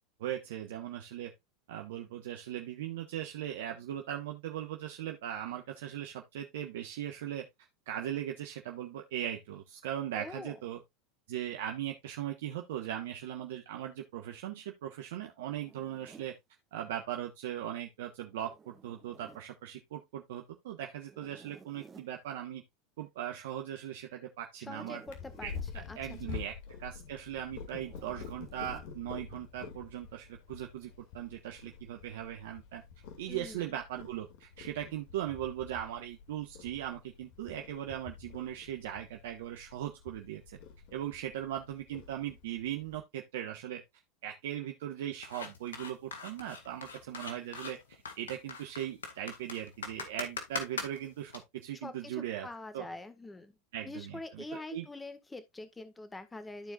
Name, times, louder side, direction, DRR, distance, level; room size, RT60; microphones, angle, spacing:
voice 1, 0.2-1.3 1.7-7.4 7.9-10.8 11.3-16.3 16.7-22.6 23.0-25.0 25.4-26.5 26.8-32.8 33.2-40.6 40.9-43.8 44.2-52.5 52.7-52.9 53.7-54.8, right 11 dB, 75° right, 1.2 m, -39 dB
voice 2, 10.1-10.5 24.7-25.5 25.9-26.0 33.3-33.7 51.8-53.5 53.8-56.7, left 2 dB, 15° left, 1.7 m, -44 dB
Zipper (clothing), 15.5-16.3 18.3-19.5 21.1-22.1 24.5-25.7 27.8-28.9, right 5 dB, 25° right, 1.5 m, -56 dB
Purr, 25.1-43.0, left 6 dB, 65° left, 2.3 m, -48 dB
sound 1, 45.2-51.4, left 5 dB, 90° left, 1.9 m, -41 dB
14.0 x 4.6 x 2.5 m
hypercardioid pair, 95°, 0 cm